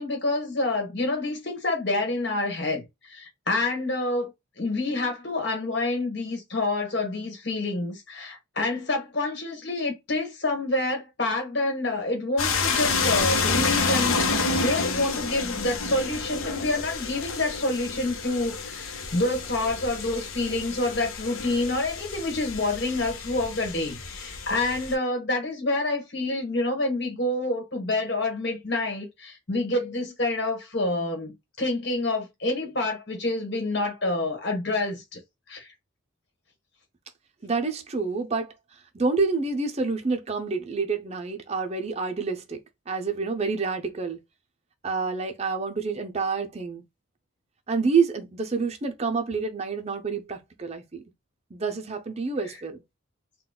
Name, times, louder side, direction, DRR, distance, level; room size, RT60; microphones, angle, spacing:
voice 1, 0.0-4.3 4.6-35.2 35.5-35.7, left 2 dB, 55° left, 1.3 m, -28 dB
sound 1, 12.4-24.9, left 4 dB, 80° left, 0.7 m, -29 dB
voice 2, 37.4-38.5 38.9-42.6 42.9-44.2 44.8-46.8 47.7-51.0 51.5-52.8, right 4 dB, 30° right, 0.5 m, -28 dB
3.9 x 2.2 x 2.2 m
head